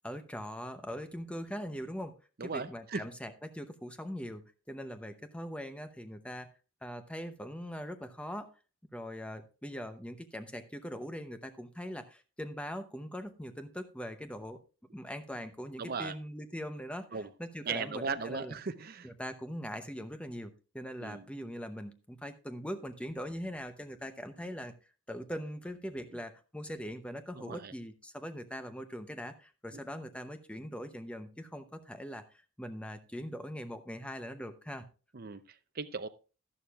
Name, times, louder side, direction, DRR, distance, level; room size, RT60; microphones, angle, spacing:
voice 1, 0.0-2.1 2.4-6.5 6.8-8.5 8.9-14.6 14.9-17.1 17.4-18.5 19.0-24.7 25.1-34.8, equal, 5° left, 0.7 m, -41 dB
voice 2, 2.4-3.0 15.8-16.1 17.1-17.3 17.6-19.1 21.0-21.3 27.3-27.7 35.1-36.1, right 4 dB, 45° right, 0.6 m, -37 dB
12.0 x 11.5 x 2.4 m
head